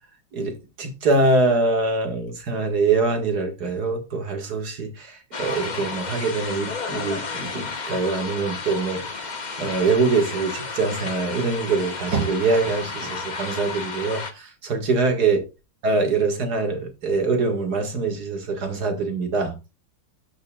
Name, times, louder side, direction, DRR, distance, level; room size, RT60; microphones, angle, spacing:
voice 1, 0.3-9.2 9.6-15.4 15.8-19.5, right 3 dB, 55° right, 2.4 m, -24 dB
sound 1, 5.3-14.3, left 4 dB, 30° left, 1.0 m, -32 dB
13.5 x 5.7 x 2.4 m
omnidirectional pair, 2.0 m